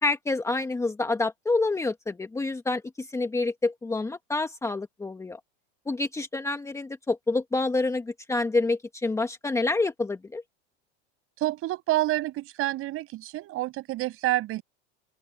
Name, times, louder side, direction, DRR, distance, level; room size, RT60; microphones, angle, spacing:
voice 1, 0.0-5.4 5.9-10.4, left 3 dB, 10° left, 1.4 m, -28 dB
voice 2, 11.4-14.6, right 16 dB, 45° right, 6.0 m, -28 dB
open air
supercardioid pair, 140°, 31 cm